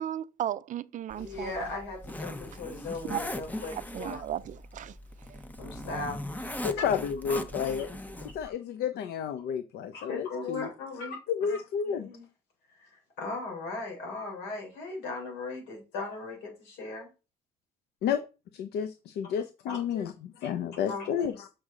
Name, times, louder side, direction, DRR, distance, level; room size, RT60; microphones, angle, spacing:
voice 1, 0.0-1.7 3.1-3.2 3.7-5.0 5.3-5.4, right 11 dB, 50° right, 0.4 m, -35 dB
Zipper (clothing), 1.1-8.5, left 1 dB, 10° left, 0.8 m, -40 dB
voice 2, 1.2-4.2 5.6-6.9 7.3-7.4 9.9-11.2 11.5-11.6 11.8-12.2 12.8-17.1 19.7-20.0 20.4-20.5 20.9-21.3, left 3 dB, 90° left, 3.7 m, -38 dB
voice 3, 6.6-7.9 8.2-10.7 11.3-12.1 18.0-18.2 18.5-21.5, left 7 dB, 75° left, 0.6 m, -31 dB
6.4 x 6.2 x 3.8 m
cardioid pair, 110°, 17 cm